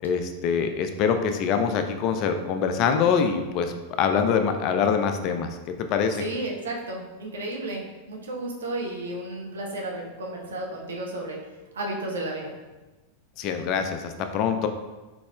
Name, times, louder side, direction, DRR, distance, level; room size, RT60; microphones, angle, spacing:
voice 1, 0.0-6.2 13.4-14.7, left 6 dB, 40° left, 7 dB, 0.3 m, -24 dB
voice 2, 6.2-11.4 11.7-12.5, right 1 dB, 65° right, -1 dB, 0.7 m, -33 dB
4.1 x 4.0 x 2.2 m, 1.2 s
figure-of-eight pair, 90°, 0 cm